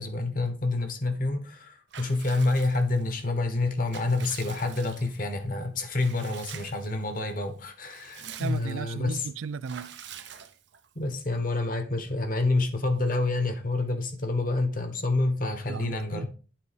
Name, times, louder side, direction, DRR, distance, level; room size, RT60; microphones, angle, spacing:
voice 1, 0.0-9.3 10.9-16.3, left 2 dB, 45° left, 1.2 m, -28 dB
Water / Bathtub (filling or washing) / Liquid, 1.9-3.1 3.6-5.3 6.0-6.9 7.3-7.4 7.7-8.9 9.6-10.9, right 9 dB, 65° right, 0.7 m, -46 dB
voice 2, 8.4-9.9 15.7-16.3, right 5 dB, 85° right, 0.4 m, -35 dB
9.0 x 4.0 x 5.0 m
head